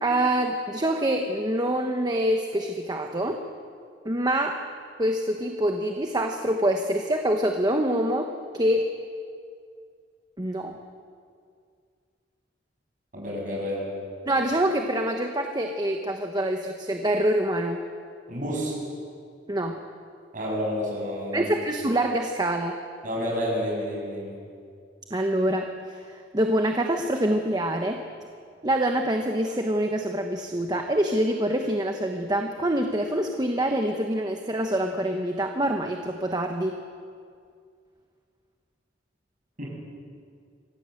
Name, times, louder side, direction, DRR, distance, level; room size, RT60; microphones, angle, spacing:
voice 1, 0.0-3.4 4.0-4.6 5.0-8.9 10.4-10.8 14.2-17.8 19.5-19.8 21.3-22.8 25.1-28.0 28.6-36.8, right 1 dB, 20° right, 4 dB, 1.2 m, -25 dB
voice 2, 13.1-13.9 18.3-18.8 20.3-21.5 23.0-24.4 39.6-39.8, equal, 45° right, -3 dB, 7.8 m, -30 dB
26.0 x 16.5 x 7.9 m, 2.2 s
head